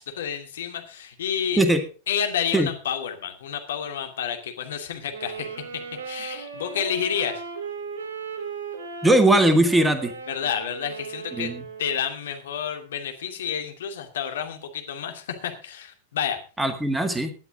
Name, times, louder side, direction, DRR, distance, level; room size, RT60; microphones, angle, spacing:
voice 1, 0.0-1.6 2.1-5.5 5.7-7.4 10.3-11.5 11.8-16.4, left 8 dB, 60° left, 5 dB, 2.5 m, -30 dB
sound 1, 5.1-12.2, right 5 dB, 60° right, 3.9 m, -37 dB
voice 2, 9.0-10.1 11.4-11.6 16.6-17.3, right 1 dB, 5° right, 9 dB, 1.9 m, -19 dB
17.0 x 11.0 x 3.9 m, 0.34 s
figure-of-eight pair, 90°, 0 cm